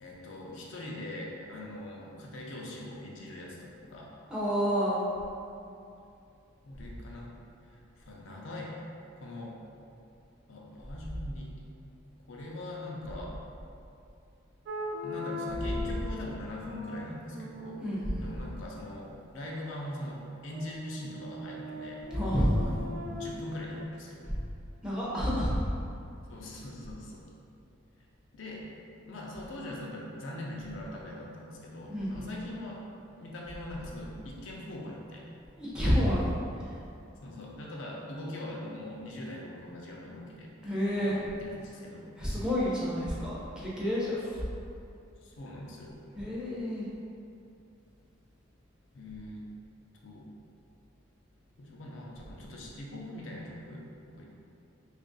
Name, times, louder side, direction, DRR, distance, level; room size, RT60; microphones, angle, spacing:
voice 1, 0.0-3.6 3.8-4.2 6.6-7.3 7.6-8.8 9.2-9.6 10.5-11.5 12.3-13.4 15.0-17.8 18.2-22.1 22.6-24.2 26.3-27.3 28.3-28.7 29.1-32.9 33.2-35.3 37.2-42.1 45.2-46.0 48.9-49.5 50.0-50.3 51.6-54.2, left 1 dB, 70° left, -3 dB, 0.5 m, -42 dB
voice 2, 4.3-5.0 17.8-18.3 22.1-22.7 24.8-25.5 31.9-32.3 35.6-36.3 36.6-36.8 40.6-41.2 42.2-44.4 46.2-46.9, equal, 5° right, -8 dB, 0.6 m, -29 dB
sound 1, 14.6-16.0 16.6-18.4 20.5-23.8, left 2 dB, 65° right, 0.4 m, -40 dB
3.0 x 2.5 x 3.7 m, 2.6 s
head